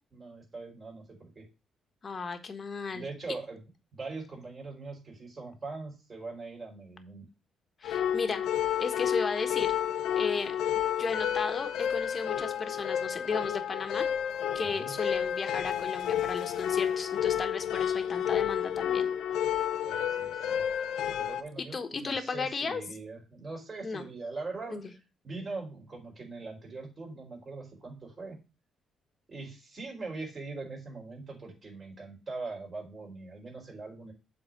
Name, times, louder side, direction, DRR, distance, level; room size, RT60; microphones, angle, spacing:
voice 1, 0.1-1.4 2.9-3.6 3.9-7.3 14.6-15.0 19.8-20.6 21.2-24.9 25.2-28.4 29.3-34.1, right 3 dB, 35° right, -1 dB, 4.3 m, -41 dB
voice 2, 2.0-3.1 7.8-8.4 8.8-9.7 10.2-10.5 11.0-14.1 14.5-19.1 21.6-22.8 23.8-24.1 24.7-24.9, left 4 dB, 40° left, 8 dB, 1.4 m, -34 dB
sound 1, 7.8-21.4, left 9 dB, 80° left, 0.7 m, -30 dB
7.8 x 4.1 x 6.1 m, 0.30 s
cardioid pair, 90°, 0 cm